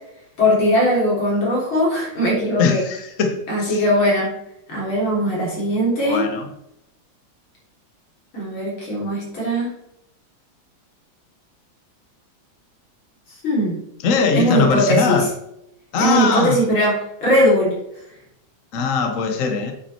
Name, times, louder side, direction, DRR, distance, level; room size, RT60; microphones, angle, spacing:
voice 1, 0.4-2.8 3.5-4.3 4.7-6.3 8.3-9.7 13.4-13.8 14.3-15.3 16.0-17.8, equal, 80° left, 4.3 m, -19 dB
voice 2, 2.6-3.8 6.0-6.5 14.0-15.3 15.9-16.6 18.7-19.7, left 5 dB, 50° left, 1.1 m, -20 dB
8.7 x 6.1 x 4.2 m
omnidirectional pair, 2.2 m